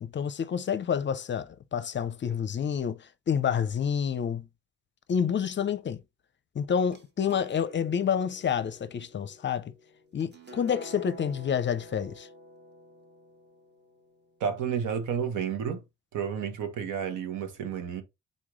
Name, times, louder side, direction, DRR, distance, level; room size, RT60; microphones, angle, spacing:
voice 1, 0.0-4.5 5.1-6.0 6.5-9.7 10.1-12.3, left 7 dB, 40° left, 0.5 m, -28 dB
sound 1, 6.7-14.4, equal, 35° right, 1.4 m, -50 dB
voice 2, 14.4-15.8 16.1-18.0, right 7 dB, 85° right, 1.2 m, -31 dB
4.1 x 3.1 x 3.7 m
cardioid pair, 90°, 30 cm